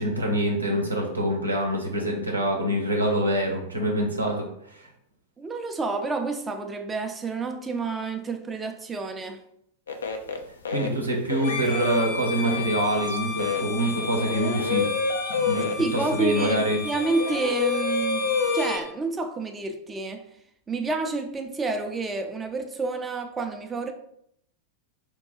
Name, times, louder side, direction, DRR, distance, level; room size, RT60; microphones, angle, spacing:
voice 1, 0.0-4.9 10.7-14.8 15.3-16.8, right 1 dB, 80° right, 0.6 m, -25 dB
voice 2, 5.4-9.4 15.7-20.3 20.7-23.9, right 3 dB, 15° right, 0.4 m, -29 dB
sound 1, 9.9-10.4 10.6-10.9 11.3-12.0 12.4-12.6 13.1-16.1 16.4-16.6 16.8-18.8, left 5 dB, 70° left, 0.4 m, -28 dB
Bowed string instrument, 11.4-18.9, left 4 dB, 35° left, 0.8 m, -34 dB
4.4 x 2.2 x 2.9 m
figure-of-eight pair, 90°, 0 cm